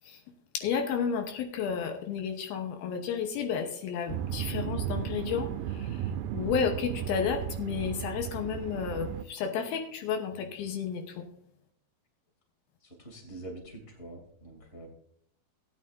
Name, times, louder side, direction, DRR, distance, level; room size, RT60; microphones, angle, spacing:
voice 1, 0.5-6.0 6.3-11.3, left 7 dB, 80° left, 4 dB, 2.8 m, -32 dB
sound 1, 4.1-9.2, right 10 dB, 80° right, 2.3 m, -35 dB
voice 2, 12.8-14.9, right 2 dB, 15° left, -1 dB, 2.7 m, -45 dB
17.5 x 9.2 x 2.6 m, 0.68 s
omnidirectional pair, 4.4 m